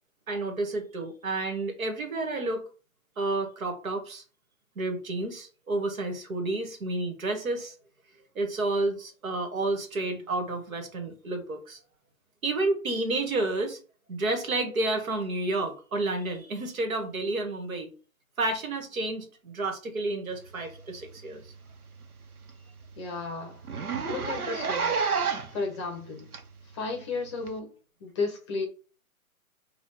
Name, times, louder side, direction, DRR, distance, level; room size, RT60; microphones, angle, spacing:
voice 1, 0.3-2.7 3.2-4.2 4.8-7.7 8.3-11.8 12.4-13.8 14.1-17.9 18.4-21.4 25.2-25.3, right 2 dB, 70° right, 1.4 m, -30 dB
Zipper (clothing), 21.0-21.2 21.5-21.6 22.0-22.1 22.5-22.6 22.8-23.0 23.6-25.6 26.3-26.4 27.5-27.6, right 5 dB, 90° right, 0.9 m, -29 dB
voice 2, 23.0-23.6 24.0-25.0 25.5-26.3 26.7-27.7 28.0-28.7, left 3 dB, 20° left, 0.6 m, -33 dB
4.2 x 2.3 x 4.5 m
hypercardioid pair, 135°, 43 cm